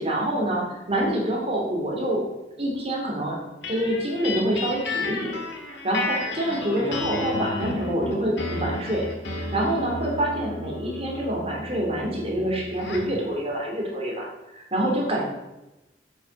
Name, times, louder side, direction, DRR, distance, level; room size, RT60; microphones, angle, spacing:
voice 1, 0.0-2.2 2.6-3.4 3.7-5.3 5.7-9.1 9.3-14.3 14.5-15.2, right 1 dB, 35° right, -1 dB, 2.8 m, -26 dB
sound 1, 3.6-13.2, left 3 dB, 90° left, 2.0 m, -33 dB
8.4 x 8.4 x 5.3 m, 0.98 s
head